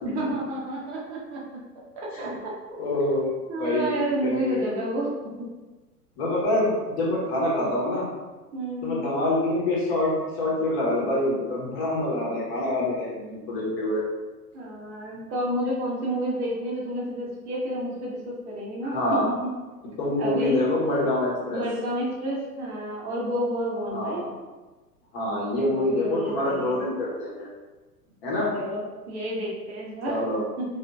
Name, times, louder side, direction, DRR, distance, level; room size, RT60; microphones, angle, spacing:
voice 1, 0.1-1.6 1.9-2.5 3.5-5.1 5.4-5.5 8.5-9.1 14.5-19.2 20.2-20.6 21.5-24.2 25.6-26.8 28.5-30.2 30.6-30.7, right 1 dB, 45° right, -5 dB, 0.8 m, -30 dB
voice 2, 2.8-3.9 4.2-4.7 6.2-6.7 7.0-8.1 8.8-14.0 18.8-19.2 20.0-21.6 23.9-24.3 25.1-27.5 28.2-28.5 30.1-30.4, left 1 dB, 40° left, -5 dB, 1.0 m, -26 dB
2.8 x 2.5 x 2.3 m, 1.2 s
figure-of-eight pair, 100°, 49 cm